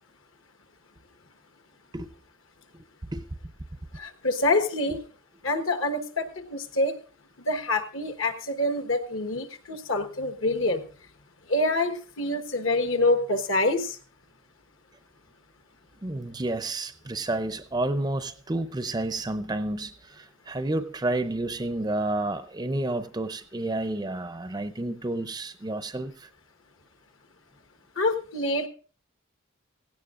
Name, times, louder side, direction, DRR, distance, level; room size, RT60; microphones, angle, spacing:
voice 1, 3.9-5.0 5.4-6.9 7.4-10.8 11.5-14.0 28.0-28.7, left 2 dB, 65° left, 1.3 m, -26 dB
voice 2, 16.0-26.3, right 2 dB, 20° right, 0.5 m, -30 dB
16.5 x 16.5 x 2.5 m
head